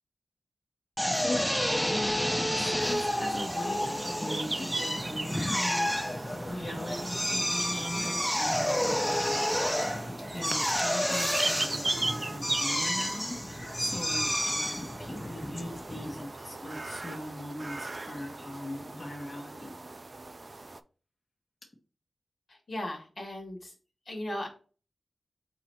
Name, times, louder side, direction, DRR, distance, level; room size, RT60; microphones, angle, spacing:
voice 1, 1.0-19.8, left 1 dB, 45° left, -1 dB, 1.0 m, -40 dB
Drill, 1.0-16.2, equal, 10° left, 0.7 m, -30 dB
sound 1, 2.8-20.8, right 2 dB, 45° right, 0.4 m, -38 dB
voice 2, 22.5-23.7 24.0-24.5, left 1 dB, 75° left, -1 dB, 1.6 m, -37 dB
3.8 x 3.0 x 4.4 m, 0.38 s
cardioid pair, 40°, 0 cm